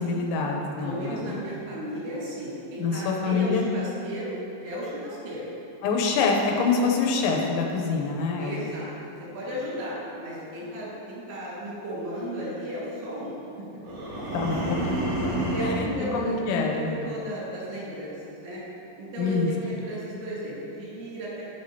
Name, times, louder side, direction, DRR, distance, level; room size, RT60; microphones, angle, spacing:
voice 1, 0.0-1.4 2.8-3.6 5.8-8.7 14.3-14.9 16.1-17.2 19.2-19.5, left 4 dB, 85° left, 0 dB, 3.1 m, -26 dB
voice 2, 0.8-4.4 4.6-5.4 8.4-8.9 9.3-13.4 15.5-18.6 19.0-21.4, right 1 dB, 85° right, -8 dB, 4.2 m, -34 dB
sound 1, 13.8-16.0, right 1 dB, 70° right, 3.7 m, -28 dB
11.0 x 4.9 x 2.8 m, 2.8 s
omnidirectional pair, 5.2 m